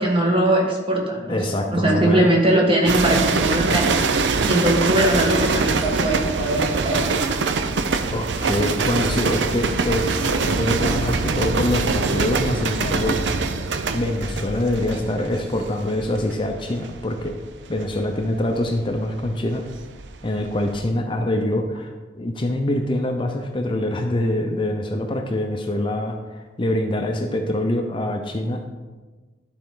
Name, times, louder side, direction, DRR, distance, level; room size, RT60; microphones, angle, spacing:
voice 1, 0.0-1.4 1.7-4.2 4.4-7.0, right 1 dB, 30° right, -1 dB, 1.4 m, -20 dB
voice 2, 1.3-2.3 8.1-10.1 10.4-13.2 13.9-17.4 17.7-19.6 20.2-28.7, left 1 dB, 30° left, 4 dB, 0.5 m, -24 dB
sound 1, 2.9-20.1 20.4-20.8, right 4 dB, 90° right, 0.5 m, -23 dB
12.0 x 4.3 x 3.7 m, 1.3 s
head